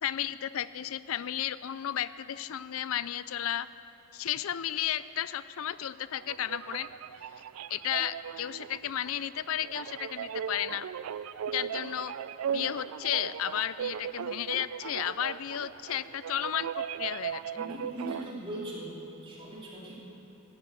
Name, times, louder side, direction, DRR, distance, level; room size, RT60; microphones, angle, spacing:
voice 1, 0.0-3.7 4.1-6.9 7.7-10.9 11.5-12.1 12.5-17.4, left 11 dB, 65° left, 16 dB, 0.4 m, -33 dB
sound 1, 6.2-18.3, right 8 dB, 75° right, 0.3 m, -38 dB
voice 2, 17.6-20.0, right 1 dB, 25° right, -5 dB, 3.1 m, -40 dB
14.5 x 11.0 x 7.7 m, 2.9 s
head